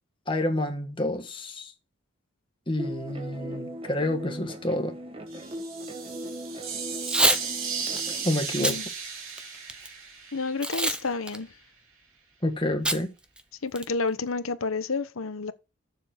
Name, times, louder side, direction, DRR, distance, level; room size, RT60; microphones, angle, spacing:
voice 1, 0.3-1.7 2.7-4.9 8.2-8.8 12.4-13.1, left 1 dB, 25° left, 1.6 m, -28 dB
sound 1, 2.8-8.2, equal, 25° right, 1.3 m, -38 dB
sound 2, 5.3-11.2, right 6 dB, 80° right, 2.9 m, -36 dB
Packing tape duct tape / Tearing, 7.0-7.4 7.9-8.0 8.5-8.8 9.3-9.9 10.6-11.0 11.3-11.4 12.9-13.0 13.4-13.5 13.8-14.1, right 1 dB, 5° right, 0.6 m, -25 dB
voice 2, 8.5-8.9 10.3-11.5 13.6-15.5, left 4 dB, 85° left, 1.0 m, -30 dB
7.1 x 6.5 x 7.7 m
head